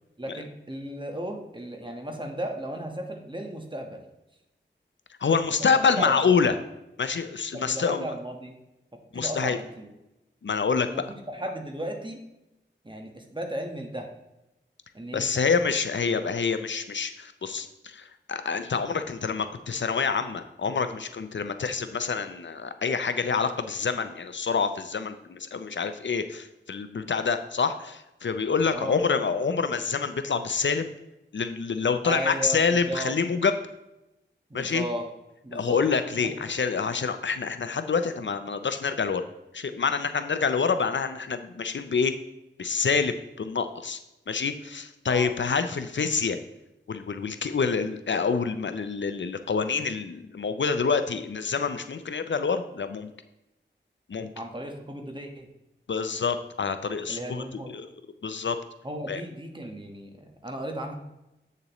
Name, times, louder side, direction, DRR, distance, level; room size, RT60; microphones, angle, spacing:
voice 1, 0.2-4.0 5.6-6.3 7.5-8.5 9.1-9.9 10.9-12.2 12.8-14.1 14.9-15.4 28.7-29.0 32.0-33.1 34.5-35.0 35.4-35.8 36.5-36.6 45.1-45.3 54.2-55.5 57.1-57.7 58.8-61.0, right 1 dB, 25° right, 3 dB, 1.3 m, -35 dB
voice 2, 5.2-6.5 7.0-8.0 9.1-9.6 10.4-10.9 15.1-30.9 31.3-33.5 34.5-34.8 35.5-39.2 39.5-42.1 42.6-44.0 44.3-46.4 46.9-53.1 54.1-54.3 55.9-57.9 58.2-58.6 59.1-59.2, left 5 dB, 75° left, 9 dB, 0.5 m, -27 dB
8.3 x 6.7 x 3.1 m, 0.92 s
wide cardioid pair, 70°, 19 cm